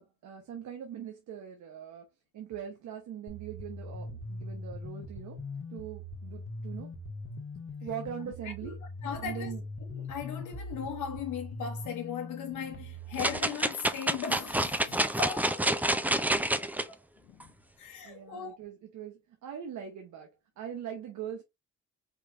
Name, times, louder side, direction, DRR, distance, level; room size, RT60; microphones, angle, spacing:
voice 1, 0.0-2.1 2.3-5.4 5.7-6.9 7.8-8.8 9.2-9.6 18.0-21.4, right 8 dB, 75° right, 1.1 m, -41 dB
sound 1, 3.3-13.4, left 1 dB, 45° left, 1.3 m, -41 dB
voice 2, 9.0-9.6 9.9-15.6 16.3-16.5 16.9-17.5 17.8-18.6, left 7 dB, 75° left, 0.9 m, -38 dB
sound 2, 13.2-16.8 17.4-17.5, right 1 dB, 5° right, 0.5 m, -28 dB
4.9 x 3.2 x 2.6 m
cardioid pair, 90°, 30 cm